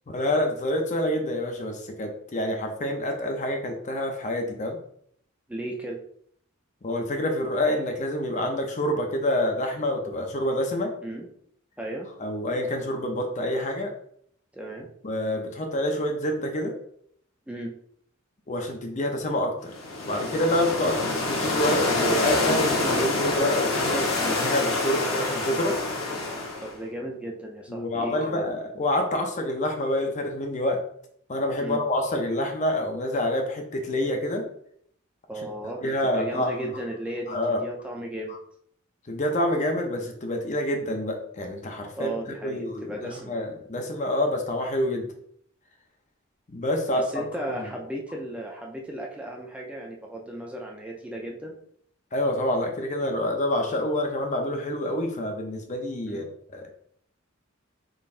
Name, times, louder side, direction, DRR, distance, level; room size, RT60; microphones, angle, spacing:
voice 1, 0.1-4.8 6.8-10.9 12.2-13.9 15.0-16.8 18.5-19.7 20.1-21.0 21.3-25.8 27.7-30.8 31.3-34.5 35.8-36.8 37.3-37.6 38.3-38.4 39.1-45.1 46.5-47.2 47.6-47.7 52.1-56.2 56.5-56.7, left 1 dB, 35° left, 3 dB, 0.6 m, -27 dB
voice 2, 5.5-6.0 11.0-11.3 11.8-12.1 14.5-14.9 17.5-17.7 26.6-28.5 31.6-31.8 35.3-35.8 36.1-38.4 41.9-43.4 46.9-51.5 56.1-56.3, right 1 dB, 5° right, -1 dB, 0.5 m, -35 dB
sound 1, 19.7-26.8, left 2 dB, 90° left, 1.0 m, -26 dB
4.0 x 3.8 x 2.5 m, 0.65 s
head